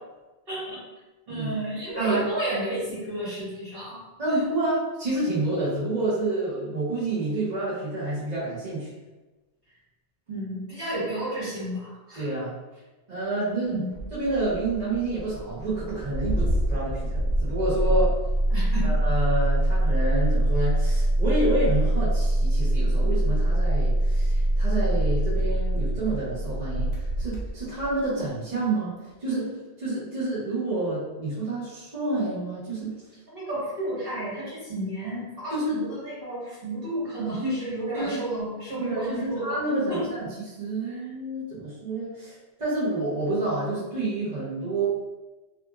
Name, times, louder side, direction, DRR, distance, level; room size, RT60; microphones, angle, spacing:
voice 1, 0.5-0.8 1.3-4.0 10.3-12.3 13.7-14.0 18.5-18.9 33.3-39.6 39.9-40.1 40.8-41.1, right 1 dB, 60° right, -9 dB, 1.5 m, -32 dB
voice 2, 4.2-8.9 12.2-12.5 13.1-13.8 14.1-18.1 18.8-28.9 29.2-32.9 35.5-35.8 37.9-38.2 38.8-40.3 40.6-44.9, right 2 dB, 40° right, -11 dB, 0.9 m, -28 dB
Engine starting, 13.9-28.0, right 1 dB, 65° left, 0.9 m, -24 dB
2.7 x 2.5 x 2.4 m, 1.1 s
omnidirectional pair, 1.1 m